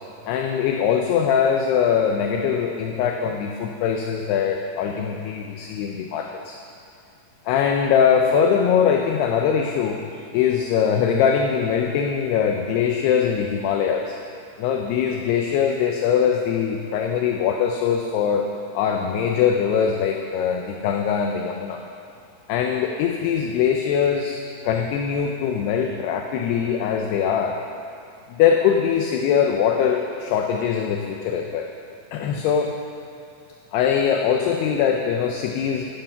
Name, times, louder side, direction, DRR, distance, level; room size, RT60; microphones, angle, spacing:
voice 1, 0.3-6.6 7.5-14.2 14.6-18.5 18.7-21.8 22.5-27.6 28.3-31.7 32.1-32.7 33.7-35.9, left 7 dB, 80° left, 2 dB, 2.5 m, -22 dB
14.5 x 11.5 x 5.7 m, 2.5 s
omnidirectional pair, 5.3 m